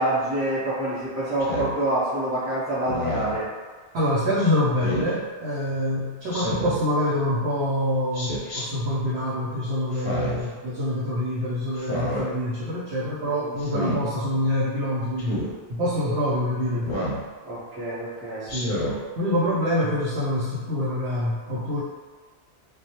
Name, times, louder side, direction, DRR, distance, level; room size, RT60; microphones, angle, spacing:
voice 1, 0.0-3.5 13.4-13.5 16.7-17.0 17.4-18.5, right 1 dB, 15° right, -16 dB, 0.6 m, -27 dB
Speech synthesizer, 1.4-1.7 2.9-3.4 4.8-5.1 6.3-6.8 8.1-8.6 9.9-10.5 11.8-12.3 13.6-14.0 15.2-15.5 16.8-17.2 18.5-19.0, equal, 55° left, 0.6 m, -29 dB
voice 2, 3.9-15.4 15.7-16.9 18.4-18.8 19.2-21.8, left 1 dB, 70° right, -8 dB, 0.8 m, -26 dB
2.2 x 2.0 x 2.8 m, 1.5 s
omnidirectional pair, 1.2 m